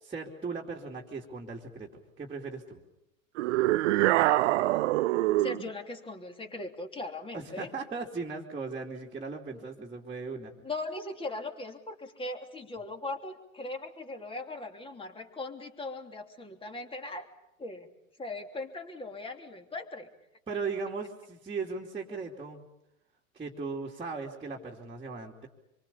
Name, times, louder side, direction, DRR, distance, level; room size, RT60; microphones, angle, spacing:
voice 1, 0.0-2.8 7.3-10.5 20.5-22.7 23.3-25.5, right 4 dB, 15° right, -4 dB, 2.9 m, -38 dB
sound 1, 3.4-5.7, right 17 dB, 55° right, 0.9 m, -25 dB
voice 2, 5.4-7.7 10.6-17.3 17.6-17.9 18.2-20.1, left 2 dB, 10° left, 5 dB, 3.1 m, -39 dB
26.5 x 24.0 x 7.0 m, 0.87 s
hypercardioid pair, 110°, 42 cm